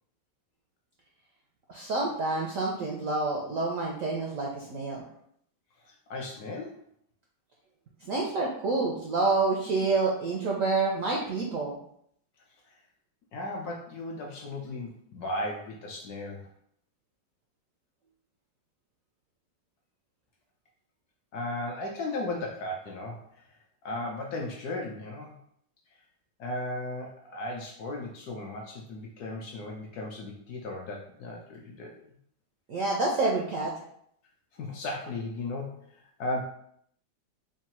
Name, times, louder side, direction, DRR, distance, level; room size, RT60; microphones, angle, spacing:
voice 1, 1.7-5.0 8.0-11.8 32.7-33.7, right 3 dB, 75° right, -2 dB, 0.7 m, -28 dB
voice 2, 5.8-6.8 13.3-16.5 21.3-23.4 23.8-25.3 26.4-32.0 34.6-35.7 36.2-36.4, left 2 dB, 70° left, 0 dB, 0.9 m, -36 dB
3.7 x 2.2 x 4.2 m, 0.68 s
omnidirectional pair, 2.0 m